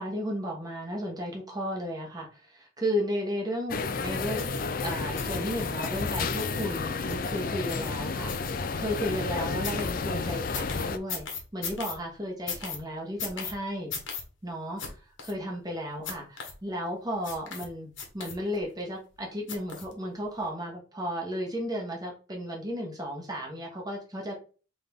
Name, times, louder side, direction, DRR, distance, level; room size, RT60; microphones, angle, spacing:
voice 1, 0.0-4.5 4.8-11.3 11.5-13.9 14.4-24.3, equal, 20° right, 0 dB, 1.2 m, -34 dB
sound 1, 3.7-11.0, left 4 dB, 45° left, 0.4 m, -31 dB
sound 2, 4.4-4.6 5.2-5.4 5.8-6.0 6.4-6.6 7.1-7.3 7.7-7.9 8.3-8.9 9.6-9.9 10.5-11.9 12.5-12.8 13.2-13.5 13.9-14.2 14.8-14.9 15.2-15.3 16.0-16.5 17.2-17.7 18.0-18.6 19.5-19.9 20.4-20.5, left 5 dB, 70° left, 1.3 m, -37 dB
3.8 x 3.5 x 3.5 m, 0.36 s
head